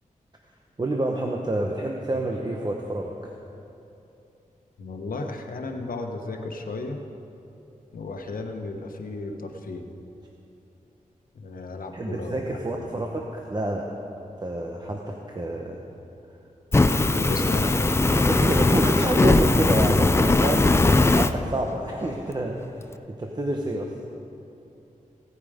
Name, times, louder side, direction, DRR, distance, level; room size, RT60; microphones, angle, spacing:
voice 1, 0.8-3.3 11.9-13.9 14.4-15.8 18.1-22.6 23.1-23.9, right 1 dB, 30° right, 0 dB, 0.9 m, -28 dB
voice 2, 4.8-7.0 7.9-9.9 11.3-13.0 17.1-17.9, left 3 dB, 90° left, 4 dB, 1.1 m, -34 dB
Fire, 16.7-21.3, left 2 dB, 20° left, 0.4 m, -19 dB
16.5 x 9.0 x 5.0 m, 2.8 s
wide cardioid pair, 115°, 14 cm